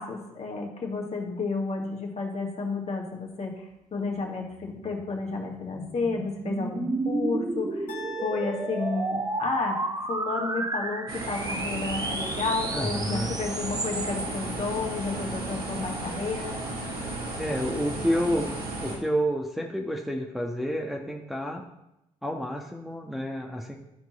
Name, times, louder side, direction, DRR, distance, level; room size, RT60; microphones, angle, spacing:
voice 1, 0.0-7.9 8.2-9.8 10.1-16.6, left 4 dB, 45° left, 0 dB, 2.1 m, -31 dB
sound 1, 4.8-14.6, right 2 dB, 25° right, 1.0 m, -32 dB
sound 2, 7.9-10.0, equal, 65° left, 1.5 m, -44 dB
sound 3, 11.1-19.0, right 2 dB, 70° right, 2.6 m, -34 dB
voice 2, 12.7-13.3 17.4-18.5 18.8-21.6 22.2-23.7, equal, ahead, -1 dB, 1.2 m, -29 dB
13.5 x 4.6 x 4.1 m, 0.88 s
hypercardioid pair, 50°, 16 cm